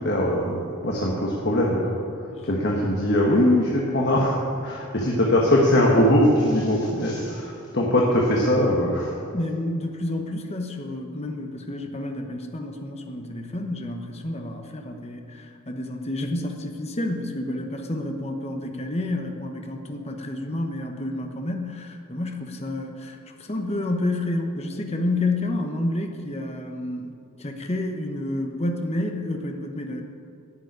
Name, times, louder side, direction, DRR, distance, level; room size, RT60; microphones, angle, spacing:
voice 1, 0.0-2.0 2.4-9.1, left 1 dB, 50° left, -3 dB, 1.4 m, -21 dB
voice 2, 9.3-30.0, left 1 dB, 30° left, 3 dB, 1.0 m, -30 dB
11.0 x 7.3 x 9.6 m, 2.5 s
head